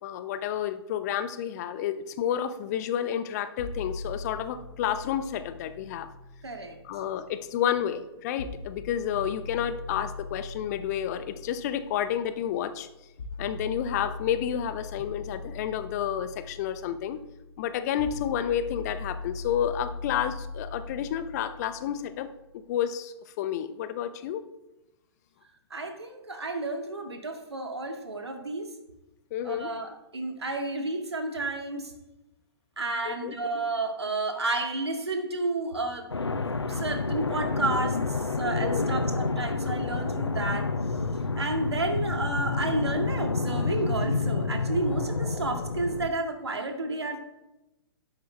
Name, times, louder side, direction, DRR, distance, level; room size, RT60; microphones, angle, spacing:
voice 1, 0.0-6.1 6.8-12.9 13.4-17.2 17.6-22.3 22.5-24.4 29.3-29.7 33.1-33.3 38.6-38.9, left 10 dB, 40° left, 12 dB, 0.8 m, -30 dB
sound 1, 3.6-7.6 8.4-22.4, left 3 dB, 60° left, 2.2 m, -41 dB
voice 2, 6.4-6.8 25.7-28.7 29.4-31.9 32.8-36.1 36.7-40.7 41.4-47.2, right 2 dB, 75° right, 4 dB, 2.0 m, -31 dB
sound 2, 36.1-46.1, left 3 dB, 80° left, 0.7 m, -29 dB
12.5 x 10.5 x 3.4 m, 0.97 s
figure-of-eight pair, 110°, 14 cm